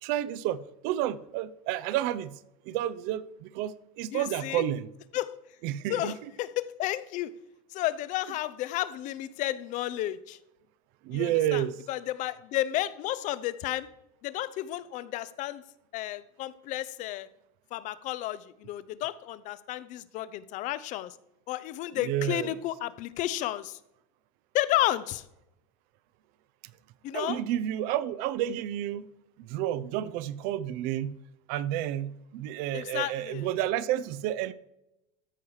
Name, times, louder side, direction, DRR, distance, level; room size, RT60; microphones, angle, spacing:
voice 1, 0.0-2.4 2.7-4.9 5.6-6.1 11.0-11.7 22.0-22.6 27.1-29.1 29.4-31.2 31.5-34.5, right 12 dB, 60° right, 0.6 m, -30 dB
voice 2, 4.1-4.6 5.1-5.4 5.9-7.3 7.7-10.4 11.1-13.9 14.2-15.6 15.9-17.3 17.7-21.1 21.5-23.8 24.5-25.2 27.0-27.4 32.7-33.5, left 14 dB, 45° left, 0.6 m, -32 dB
13.5 x 4.8 x 4.8 m
supercardioid pair, 115°, 17 cm